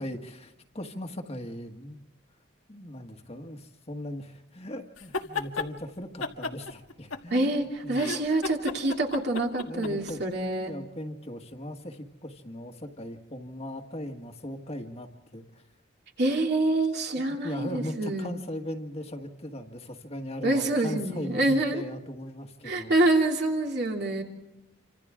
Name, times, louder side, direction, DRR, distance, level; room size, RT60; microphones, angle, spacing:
voice 1, 0.0-2.0 2.7-7.6 7.8-8.0 9.7-15.6 17.1-22.9, left 1 dB, 30° left, 4 dB, 1.7 m, -39 dB
sound 1, 5.0-5.7 6.2-7.6 7.9-10.1, left 4 dB, 90° left, 1.7 m, -33 dB
voice 2, 7.3-10.7 16.2-18.3 20.4-21.8 22.6-24.2, right 2 dB, 55° right, 1 dB, 2.9 m, -26 dB
27.5 x 26.0 x 3.7 m, 0.92 s
head